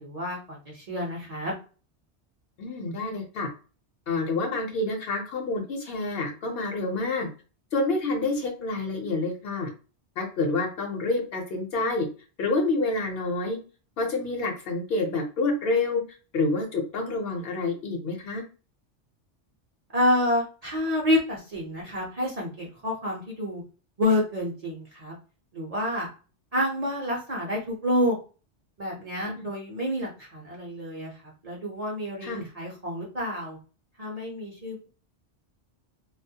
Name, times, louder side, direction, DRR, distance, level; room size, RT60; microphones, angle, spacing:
voice 1, 0.0-1.5 19.9-23.6 24.0-25.2 25.5-26.1 26.5-28.2 28.8-31.1 31.4-33.6 34.0-34.9, left 1 dB, 45° right, -2 dB, 0.6 m, -28 dB
voice 2, 2.6-3.5 4.1-7.3 7.7-9.7 10.2-12.1 12.4-13.6 14.0-16.0 16.3-18.4 29.2-29.5 32.2-32.5, left 3 dB, 60° left, 2 dB, 0.8 m, -28 dB
2.3 x 2.0 x 2.7 m, 0.36 s
omnidirectional pair, 1.2 m